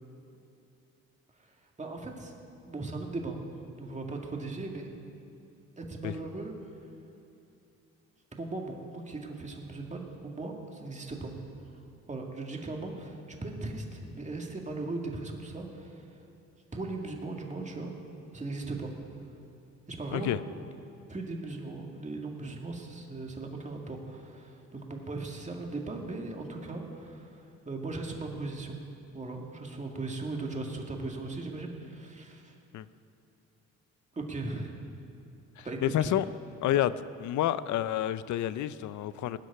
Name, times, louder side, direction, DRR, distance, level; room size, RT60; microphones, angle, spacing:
voice 1, 1.8-2.3 2.7-3.5 3.8-4.9 5.8-6.5 8.4-11.3 12.1-16.1 16.7-17.9 18.3-18.9 19.9-20.3 21.1-28.8 29.1-32.5 34.2-34.7 35.6-36.1 36.7-36.8, right 3 dB, 25° right, 1 dB, 2.1 m, -38 dB
voice 2, 35.6-36.2 36.6-36.9 37.2-39.4, left 12 dB, 70° left, 15 dB, 0.6 m, -29 dB
18.0 x 6.4 x 9.7 m, 2.7 s
cardioid pair, 90°, 30 cm